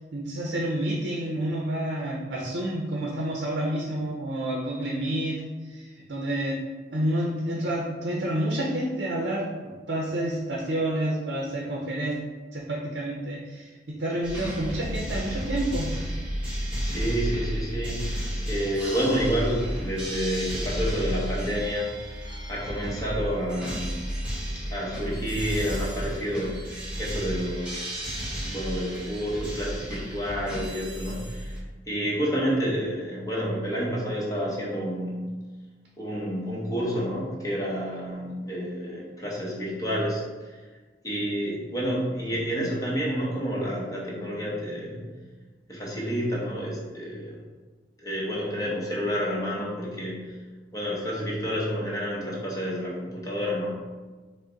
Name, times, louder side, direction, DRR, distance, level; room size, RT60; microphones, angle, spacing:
voice 1, 0.1-6.6 6.9-9.5 9.9-12.2 12.5-15.9, right 1 dB, 65° right, -2 dB, 0.6 m, -29 dB
sound 1, 14.2-31.6, equal, 5° right, 1.2 m, -32 dB
voice 2, 16.8-24.0 24.7-26.7 27.0-28.0 28.4-31.6 31.9-35.2 36.0-40.2 40.5-40.6 41.0-45.0 45.7-47.4 48.0-50.3 50.7-53.7, equal, 20° left, -5 dB, 1.0 m, -29 dB
5.0 x 2.1 x 3.9 m, 1.3 s
head